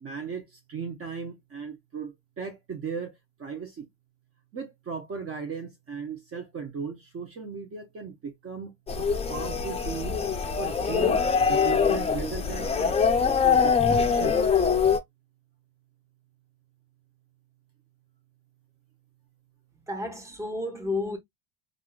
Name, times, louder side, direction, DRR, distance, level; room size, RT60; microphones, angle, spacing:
voice 1, 0.0-3.1 3.4-3.9 4.5-10.2 10.6-14.4, right 6 dB, 30° right, 0.8 m, -37 dB
sound 1, 8.9-15.0, left 6 dB, 15° left, 0.5 m, -23 dB
voice 2, 19.9-21.2, left 2 dB, 5° right, 0.9 m, -31 dB
3.6 x 2.4 x 2.4 m
supercardioid pair, 110°, 44 cm